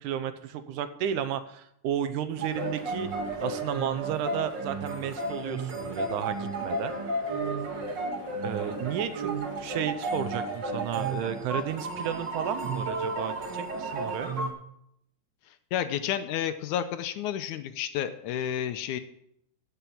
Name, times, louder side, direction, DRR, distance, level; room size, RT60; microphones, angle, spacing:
voice 1, 0.0-3.1 3.4-6.9 8.4-14.3, right 9 dB, 80° right, 11 dB, 2.2 m, -33 dB
sound 1, 2.4-14.5, right 2 dB, 40° right, 1.8 m, -33 dB
voice 2, 15.5-19.0, left 10 dB, 75° left, 10 dB, 2.0 m, -31 dB
14.5 x 6.1 x 7.0 m, 0.74 s
omnidirectional pair, 3.7 m